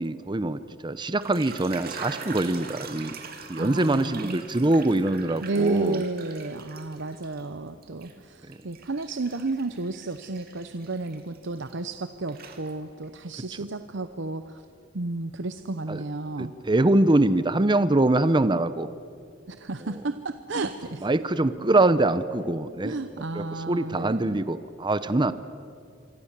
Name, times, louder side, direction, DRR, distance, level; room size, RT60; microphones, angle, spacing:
voice 1, 0.0-3.2 3.5-6.0 8.5-8.6 15.9-16.0 16.4-18.9 21.0-22.9 23.3-25.3, right 2 dB, 25° right, 13 dB, 0.7 m, -23 dB
sound 1, 1.0-7.4 7.8-12.0 12.3-13.1, right 5 dB, 50° right, 2.3 m, -43 dB
voice 2, 3.6-4.4 5.4-14.6 14.9-16.5 19.5-21.1 22.8-24.4, right 3 dB, 65° right, 10 dB, 0.9 m, -32 dB
26.5 x 24.5 x 7.4 m, 2.3 s
head